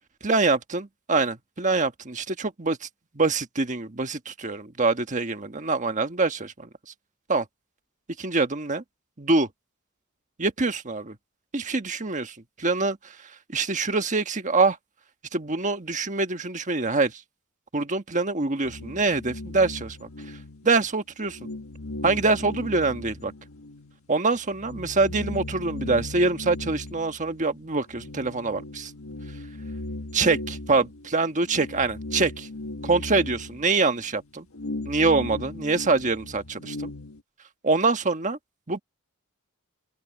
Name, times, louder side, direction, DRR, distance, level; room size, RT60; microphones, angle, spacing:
voice 1, 0.2-2.9 3.1-6.7 7.3-7.4 8.2-8.8 9.2-9.5 10.4-11.1 11.5-13.0 13.5-14.8 15.3-17.1 17.7-20.1 20.6-21.4 22.0-23.3 24.1-28.9 30.1-32.5 32.8-34.4 34.8-36.9 37.6-38.4 38.7-38.8, right 3 dB, 35° right, 1.4 m, -25 dB
sound 1, 18.6-20.9 21.2-24.0 24.3-37.2, left 2 dB, 80° left, 1.5 m, -38 dB
open air
head